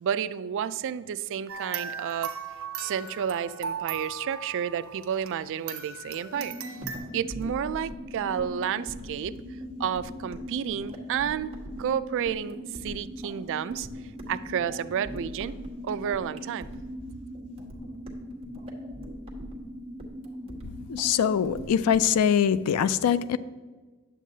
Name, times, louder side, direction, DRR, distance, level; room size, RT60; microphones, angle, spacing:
voice 1, 0.0-2.3 2.8-6.6 7.1-9.3 9.8-11.5 11.8-13.9 14.3-15.5 15.8-16.7, right 8 dB, 60° right, 0.3 m, -31 dB
sound 1, 1.5-5.4 5.7-7.0, right 6 dB, 75° right, 1.1 m, -37 dB
sound 2, 6.3-22.0, left 1 dB, 5° right, 0.9 m, -41 dB
sound 3, 6.8-22.2, right 1 dB, 30° right, 1.2 m, -44 dB
voice 2, 20.9-23.4, left 8 dB, 90° left, 0.4 m, -23 dB
9.9 x 7.3 x 2.7 m
head